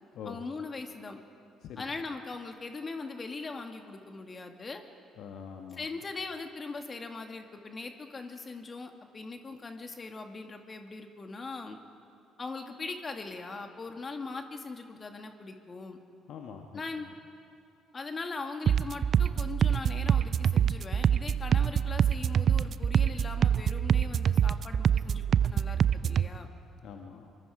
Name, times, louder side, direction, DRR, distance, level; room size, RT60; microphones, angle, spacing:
voice 1, 0.2-1.2 1.8-4.8 5.7-11.8 12.4-16.0 16.7-17.1 17.9-26.5, left 3 dB, 35° left, 5 dB, 2.1 m, -40 dB
voice 2, 5.2-5.8 16.3-16.8 26.8-27.3, left 7 dB, 65° left, 3 dB, 1.4 m, -44 dB
sound 1, 18.7-26.3, right 8 dB, 55° right, 0.5 m, -25 dB
24.5 x 24.0 x 4.9 m, 2.6 s
hypercardioid pair, 50°, 0 cm